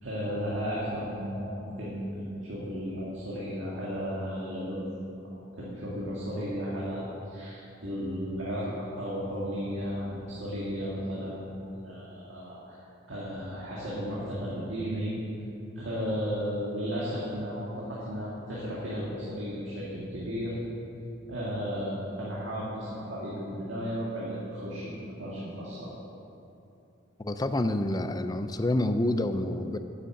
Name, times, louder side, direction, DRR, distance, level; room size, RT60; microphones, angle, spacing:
voice 1, 0.0-8.7 9.0-11.5 11.8-12.8 13.1-15.1 15.8-20.5 21.3-25.9, equal, 70° right, -7 dB, 1.9 m, -34 dB
voice 2, 27.2-29.8, left 1 dB, 20° left, 9 dB, 0.4 m, -28 dB
9.3 x 6.7 x 7.7 m, 2.7 s
head